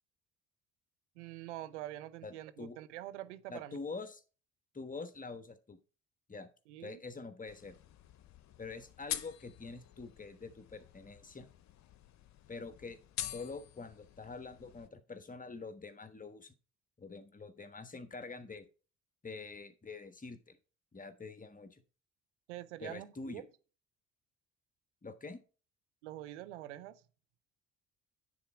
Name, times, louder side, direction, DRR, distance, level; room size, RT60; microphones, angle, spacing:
voice 1, 1.2-3.8 6.7-7.0 22.5-23.4 26.0-27.0, right 14 dB, 90° right, 0.6 m, -45 dB
voice 2, 2.2-2.8 3.5-4.2 4.7-5.8 6.3-6.5 6.8-7.8 8.6-11.5 12.5-16.5 17.0-18.7 19.2-20.6 20.9-21.8 22.8-23.4 25.0-25.4, left 4 dB, 25° left, 1.3 m, -46 dB
sound 1, 7.5-14.9, left 12 dB, 55° left, 0.8 m, -46 dB
9.4 x 4.2 x 4.9 m
hypercardioid pair, 55°, 34 cm